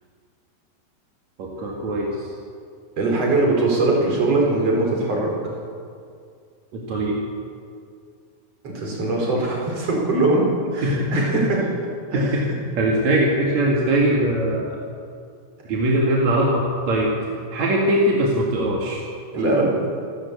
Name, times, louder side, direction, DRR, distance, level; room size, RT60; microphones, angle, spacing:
voice 1, 1.4-2.3 6.7-7.2 10.8-11.4 12.1-12.4 12.8-14.8 15.7-17.1 17.5-19.1, right 1 dB, 50° right, -2 dB, 2.6 m, -21 dB
voice 2, 3.0-5.3 8.6-10.5 10.7-11.6 12.1-12.5 19.3-19.7, right 2 dB, 35° right, -1 dB, 5.5 m, -21 dB
27.0 x 13.5 x 8.5 m, 2.3 s
omnidirectional pair, 5.5 m